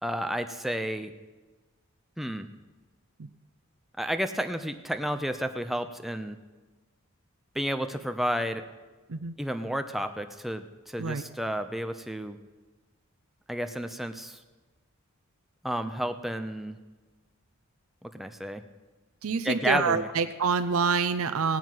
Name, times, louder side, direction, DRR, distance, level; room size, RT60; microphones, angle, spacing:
voice 1, 0.0-1.1 2.2-2.5 4.0-6.4 7.5-8.6 9.4-12.4 13.5-14.4 15.6-16.8 18.0-18.6 19.4-20.1, equal, ahead, 7 dB, 0.6 m, -31 dB
voice 2, 19.2-21.6, right 5 dB, 75° right, 10 dB, 0.6 m, -27 dB
17.5 x 6.0 x 9.4 m, 1.3 s
head